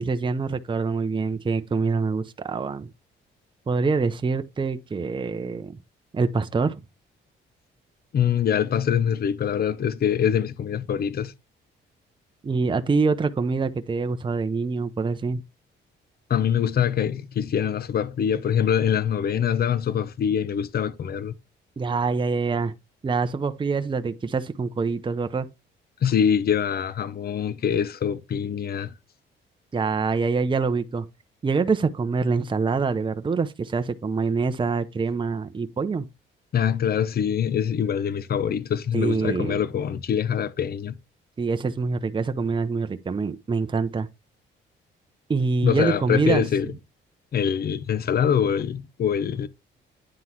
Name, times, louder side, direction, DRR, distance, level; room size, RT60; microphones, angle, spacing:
voice 1, 0.0-2.9 3.7-5.8 6.1-6.8 12.4-15.4 21.8-22.7 23.0-25.5 29.7-31.1 31.4-36.1 38.9-39.6 41.4-44.1 45.3-46.5, right 4 dB, 25° right, 0.7 m, -25 dB
voice 2, 8.1-11.3 16.3-21.3 26.0-28.9 36.5-41.0 45.6-46.7 47.3-49.5, left 8 dB, 50° left, 0.8 m, -24 dB
9.8 x 3.8 x 4.6 m
cardioid pair, 90°, 20 cm